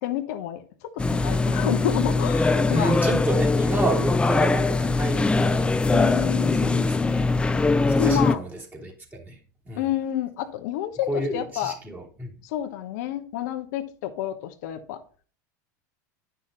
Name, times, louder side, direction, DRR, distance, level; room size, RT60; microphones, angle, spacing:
voice 1, 0.0-3.0 5.9-6.9 8.0-8.4 9.8-11.7 12.4-15.0, left 12 dB, 70° left, 0.9 m, -29 dB
public bathroom ambience, 1.0-8.4, left 3 dB, 10° left, 0.4 m, -22 dB
voice 2, 2.7-5.8 6.0-6.3 6.6-7.4 7.8-9.4 9.6-9.8 11.1-12.3, right 1 dB, 15° right, 2.9 m, -30 dB
9.9 x 5.7 x 3.9 m
hypercardioid pair, 100°, 10 cm